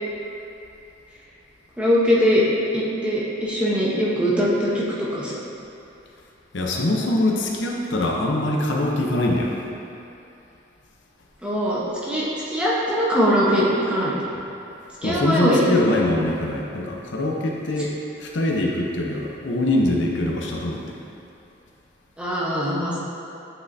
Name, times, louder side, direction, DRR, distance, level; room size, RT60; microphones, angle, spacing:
voice 1, 1.8-2.4 2.7-5.4 11.4-14.1 15.0-15.6 22.2-23.0, equal, 5° right, -7 dB, 0.9 m, -21 dB
voice 2, 6.5-9.7 15.0-17.9 18.2-21.0, left 1 dB, 70° left, -1 dB, 0.7 m, -23 dB
8.1 x 5.6 x 2.6 m, 2.7 s
head